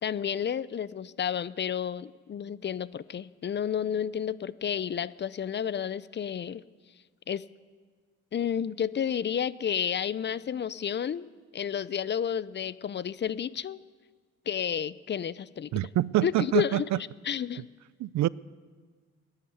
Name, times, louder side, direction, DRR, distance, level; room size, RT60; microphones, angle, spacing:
voice 1, 0.0-6.6 7.3-7.4 8.3-11.3 11.5-13.8 14.5-15.7 16.2-16.9 17.2-17.7, left 8 dB, 35° left, 0.5 m, -31 dB
voice 2, 15.7-17.0 18.0-18.3, right 14 dB, 65° right, 0.4 m, -26 dB
16.5 x 10.5 x 8.1 m
cardioid pair, 90°, 30 cm